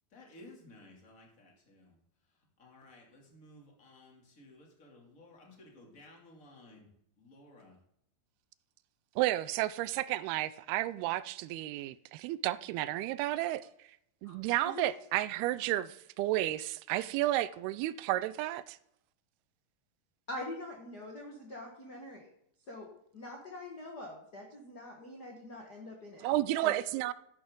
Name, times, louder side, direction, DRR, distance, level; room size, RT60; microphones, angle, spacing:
voice 1, 0.1-2.0 2.3-6.9 7.2-7.8, left 1 dB, 25° left, 2.7 m, -56 dB
voice 2, 9.2-13.7 14.2-18.8 26.2-27.1, right 15 dB, 85° right, 2.5 m, -32 dB
voice 3, 20.3-22.3 22.7-26.3 26.6-26.8, left 1 dB, 70° left, 0.9 m, -44 dB
13.0 x 11.0 x 3.8 m
omnidirectional pair, 4.5 m